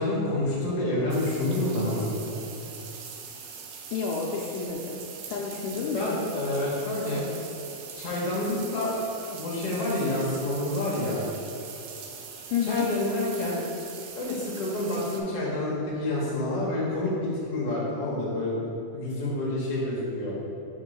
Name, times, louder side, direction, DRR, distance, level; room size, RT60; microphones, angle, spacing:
voice 1, 0.0-2.3 5.7-7.3 7.9-9.0 9.3-11.2 12.6-13.6 14.1-20.4, left 1 dB, 65° left, -5 dB, 1.6 m, -28 dB
sound 1, 1.1-15.2, right 6 dB, 85° right, 1.6 m, -42 dB
voice 2, 3.9-6.2 12.5-12.9, left 5 dB, 80° left, -2 dB, 2.0 m, -30 dB
4.6 x 4.4 x 5.0 m, 2.8 s
omnidirectional pair, 3.8 m